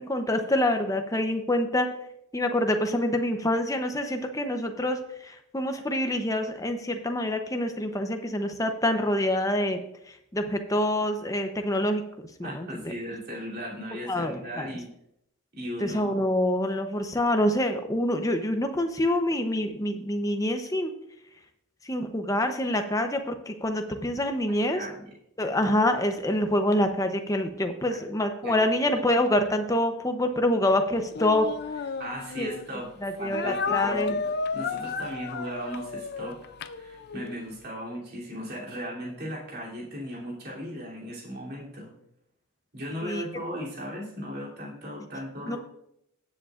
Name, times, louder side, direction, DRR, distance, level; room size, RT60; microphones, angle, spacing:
voice 1, 0.0-1.9 2.3-9.8 10.3-12.9 14.1-14.7 15.8-20.9 21.8-24.9 25.4-31.5 32.4-32.5 33.0-34.2 43.0-43.2 45.5-45.6, left 1 dB, 15° left, 6 dB, 0.7 m, -26 dB
voice 2, 12.4-14.9 15.5-16.1 24.5-25.1 27.9-28.0 28.4-28.7 28.9-29.0 32.0-32.9 33.2-36.4 36.7-41.9 42.7-45.6, equal, 45° right, -4 dB, 3.0 m, -37 dB
Speech, 31.1-32.7 33.3-37.3, left 5 dB, 45° left, 0.4 m, -32 dB
17.0 x 7.6 x 2.5 m, 0.78 s
head